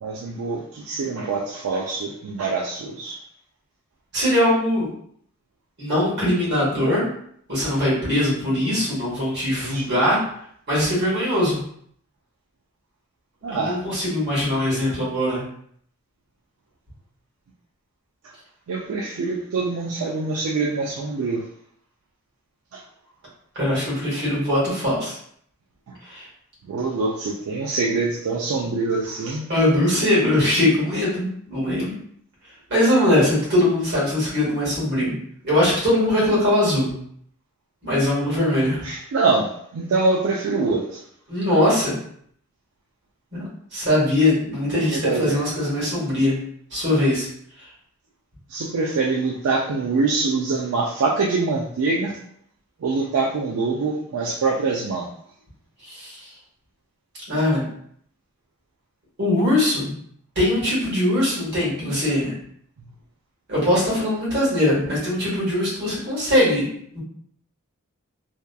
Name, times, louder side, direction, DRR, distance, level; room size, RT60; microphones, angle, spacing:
voice 1, 0.0-3.2 9.7-9.9 13.4-13.8 18.7-21.4 22.7-22.8 25.9-26.0 26.6-29.4 38.8-41.0 44.7-45.4 48.5-52.2 52.8-55.1, right 3 dB, 80° right, -1 dB, 0.4 m, -24 dB
voice 2, 4.1-4.9 5.8-7.1 7.5-10.2 10.7-11.6 13.5-15.4 23.5-25.2 26.0-26.3 29.5-32.0 32.7-35.1 35.4-36.9 37.8-38.9 41.3-42.0 43.3-46.3 46.7-47.3 55.9-56.2 57.3-57.7 59.2-59.9 60.3-62.3 63.5-66.7 66.9-67.0, left 1 dB, 50° right, -7 dB, 1.4 m, -21 dB
2.8 x 2.3 x 2.2 m, 0.66 s
head